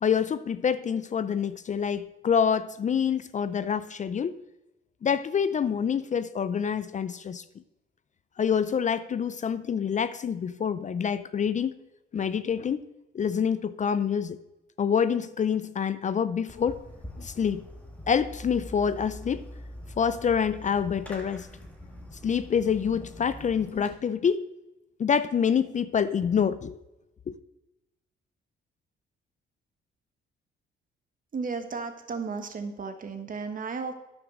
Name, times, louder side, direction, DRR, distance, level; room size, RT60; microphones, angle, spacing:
voice 1, 0.0-4.4 5.0-7.4 8.4-11.8 12.1-12.8 13.1-14.4 14.8-16.8 17.2-17.6 18.1-19.5 20.0-21.5 22.2-24.4 25.0-26.8 27.3-27.4, left 7 dB, 40° left, 14 dB, 0.5 m, -26 dB
Fireworks, 16.5-23.9, left 1 dB, 5° left, 1.9 m, -44 dB
voice 2, 31.3-33.9, right 4 dB, 45° right, 6 dB, 1.5 m, -34 dB
9.7 x 6.1 x 6.4 m, 0.94 s
cardioid pair, 90°, 20 cm